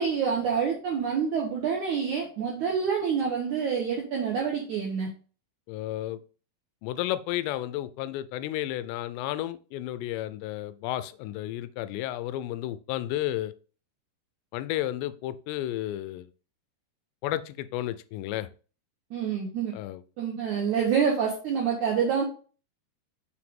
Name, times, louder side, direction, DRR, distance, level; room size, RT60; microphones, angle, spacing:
voice 1, 0.0-5.1 19.1-19.8 20.2-22.2, right 6 dB, 80° right, 0 dB, 1.7 m, -27 dB
voice 2, 5.7-6.2 6.8-13.5 14.5-16.3 17.2-18.5 19.7-20.0, left 14 dB, 90° left, 14 dB, 2.8 m, -32 dB
6.6 x 4.8 x 3.6 m, 0.38 s
omnidirectional pair, 4.9 m